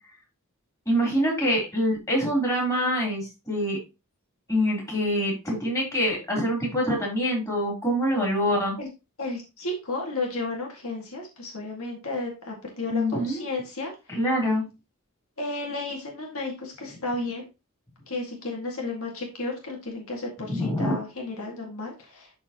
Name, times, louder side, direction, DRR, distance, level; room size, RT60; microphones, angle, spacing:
voice 1, 0.9-3.8 4.5-8.7 12.9-13.4 14.1-14.6 20.4-20.9, equal, 15° left, -2 dB, 3.6 m, -25 dB
voice 2, 9.2-13.9 15.4-17.4 18.1-22.4, left 2 dB, 65° left, 0 dB, 2.0 m, -33 dB
12.0 x 4.3 x 2.9 m, 0.27 s
head